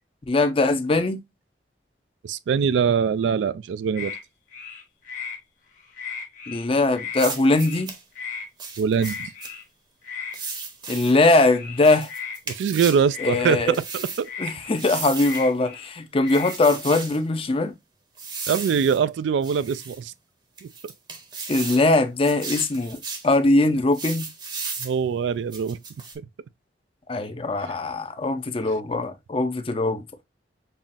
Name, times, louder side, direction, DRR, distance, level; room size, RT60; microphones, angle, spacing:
voice 1, 0.3-1.2 6.5-7.9 10.9-12.1 13.2-13.8 14.4-17.7 21.5-23.0 23.2-24.3 27.1-30.0, left 2 dB, 30° left, 0.5 m, -21 dB
voice 2, 2.2-4.2 8.8-9.3 12.5-13.6 13.9-14.3 18.5-20.1 20.6-20.7 24.8-25.8, right 6 dB, 85° right, 0.3 m, -23 dB
sound 1, 4.0-4.2 4.5-5.4 5.8-6.6 6.9-7.3 7.5-7.8 8.2-8.5 9.0-9.6 10.0-10.4 11.5-12.4 13.1-13.7 14.2-15.9 16.2-16.5, left 6 dB, 50° left, 1.0 m, -36 dB
sound 2, 7.2-8.0 8.6-9.5 10.3-11.2 11.8-13.1 13.7-14.3 14.8-15.5 16.3-17.2 18.2-19.0 19.4-20.0 20.6-21.9 22.2-23.3 23.9-25.0 25.5-26.2, right 4 dB, 25° right, 0.7 m, -35 dB
5.5 x 2.4 x 2.5 m
head